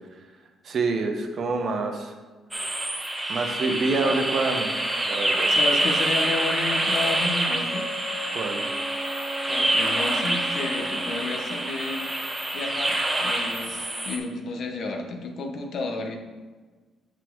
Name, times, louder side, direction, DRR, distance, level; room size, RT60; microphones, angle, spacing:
voice 1, 0.6-2.1 3.3-4.7 5.0-5.5 8.3-8.6, right 3 dB, 55° right, 4 dB, 1.0 m, -26 dB
sound 1, 2.5-14.2, right 1 dB, 10° right, 1.2 m, -26 dB
voice 2, 5.5-7.9 9.5-12.1 12.5-16.2, left 3 dB, 65° left, 3 dB, 1.1 m, -31 dB
Wind instrument woodwind instrument, 7.6-11.2, equal, 10° left, 2.0 m, -36 dB
6.0 x 5.8 x 4.7 m, 1.3 s
cardioid pair, 90°, 0 cm